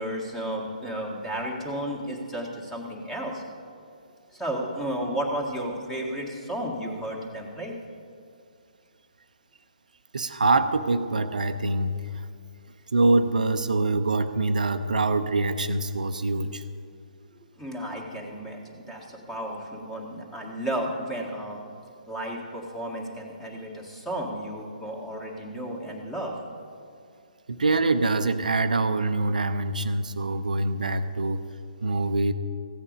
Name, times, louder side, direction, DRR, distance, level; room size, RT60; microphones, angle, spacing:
voice 1, 0.0-3.8 4.3-7.7 17.6-21.6 22.1-26.4, right 1 dB, 5° left, -1 dB, 1.8 m, -33 dB
voice 2, 10.1-12.3 12.9-16.6 27.5-31.4 31.8-32.3, right 2 dB, 80° right, 9 dB, 0.6 m, -24 dB
15.0 x 8.7 x 5.1 m, 2.4 s
figure-of-eight pair, 140°, 4 cm